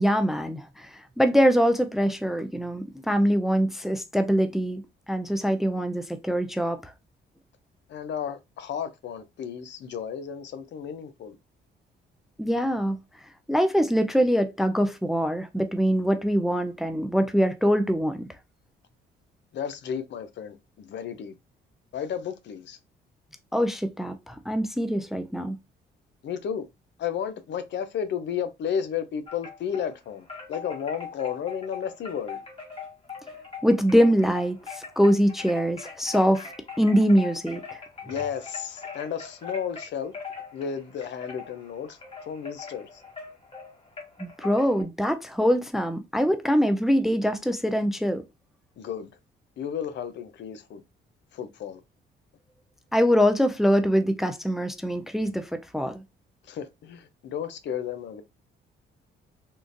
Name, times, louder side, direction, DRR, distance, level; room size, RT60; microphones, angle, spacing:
voice 1, 0.0-4.8 5.1-6.8 12.4-13.0 13.5-18.3 23.5-25.6 33.6-36.5 36.8-37.8 44.2-48.2 52.9-56.0, equal, ahead, 0.4 m, -23 dB
voice 2, 7.9-11.4 19.5-21.3 21.9-22.8 26.2-26.7 27.0-32.4 38.1-40.1 40.5-43.0 48.8-49.1 49.6-50.8 51.3-51.8 56.4-58.2, left 8 dB, 65° left, 0.6 m, -33 dB
Wind chime, 29.3-29.9 30.3-44.8, left 5 dB, 30° left, 1.4 m, -41 dB
3.7 x 2.4 x 2.5 m
cardioid pair, 90°, 20 cm